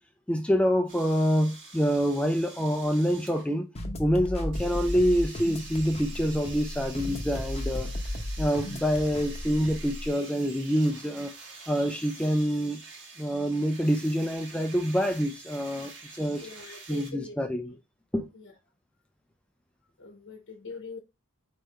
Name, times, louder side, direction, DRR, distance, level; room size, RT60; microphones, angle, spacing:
voice 1, 0.3-3.7 4.0-7.9 8.4-11.3 11.7-12.8 13.2-16.5 16.9-17.7 18.1-18.3, equal, 5° left, 0.3 m, -26 dB
sound 1, 0.9-3.5 4.5-17.1, right 3 dB, 55° right, 1.3 m, -46 dB
sound 2, 3.8-10.1, left 1 dB, 30° left, 0.7 m, -35 dB
voice 2, 16.4-17.8 18.3-18.6 20.0-21.0, left 4 dB, 60° left, 0.8 m, -43 dB
4.2 x 3.6 x 3.3 m
head